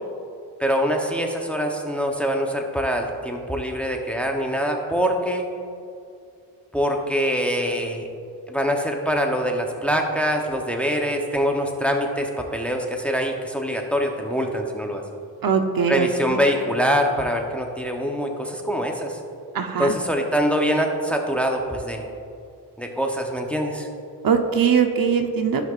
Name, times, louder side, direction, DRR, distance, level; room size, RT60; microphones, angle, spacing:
voice 1, 0.6-5.5 6.7-8.1 8.5-15.0 15.9-19.2 19.8-22.1 22.8-23.9, equal, 5° left, 2 dB, 0.8 m, -24 dB
voice 2, 15.4-16.4 19.5-19.9 24.2-25.7, right 6 dB, 60° right, 5 dB, 0.8 m, -21 dB
14.5 x 5.8 x 2.5 m, 2.5 s
cardioid pair, 95°, 40 cm